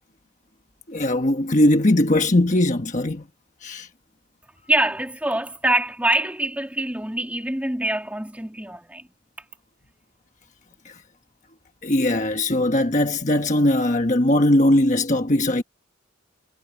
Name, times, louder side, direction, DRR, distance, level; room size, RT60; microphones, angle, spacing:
voice 1, 0.9-3.2 3.6-3.9 10.8-11.0 11.8-15.6, left 1 dB, 35° left, 1.3 m, -20 dB
voice 2, 4.7-9.1, right 1 dB, 5° right, 3.0 m, -24 dB
head